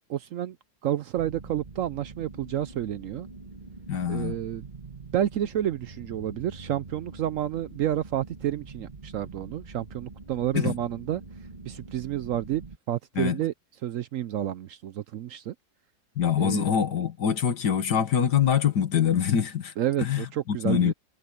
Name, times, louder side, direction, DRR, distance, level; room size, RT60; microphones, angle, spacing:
voice 1, 0.1-0.6 0.8-3.3 4.1-4.6 5.1-11.2 11.7-13.5 13.8-15.5 16.4-16.7 19.8-20.9, right 11 dB, 65° right, 0.8 m, -30 dB
sound 1, 1.2-12.8, right 3 dB, 30° right, 1.7 m, -45 dB
voice 2, 3.9-4.4 10.5-10.7 13.2-13.4 16.2-19.7 20.0-20.9, left 8 dB, 80° left, 2.1 m, -24 dB
omnidirectional pair, 1.7 m